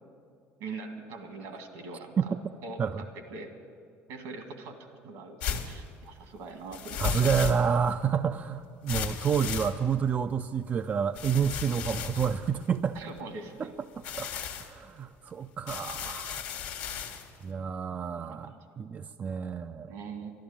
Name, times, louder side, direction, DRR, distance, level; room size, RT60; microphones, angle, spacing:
voice 1, 0.6-2.3 2.6-3.1 3.3-3.5 4.1-4.7 5.0-7.2 13.0-13.7 18.2-18.6 19.9-20.3, right 4 dB, 75° right, 6 dB, 1.9 m, -42 dB
sound 1, 5.4-5.8 6.7-7.9 8.9-10.1 11.1-13.2 13.9-14.7 15.7-17.3, left 7 dB, 90° left, 1.3 m, -35 dB
voice 2, 7.0-13.0 13.6-13.7 14.1-14.3 14.6-16.4 17.4-19.9, right 7 dB, 35° right, 9 dB, 0.4 m, -29 dB
12.5 x 11.5 x 8.7 m, 2.3 s
supercardioid pair, 100°, 5 cm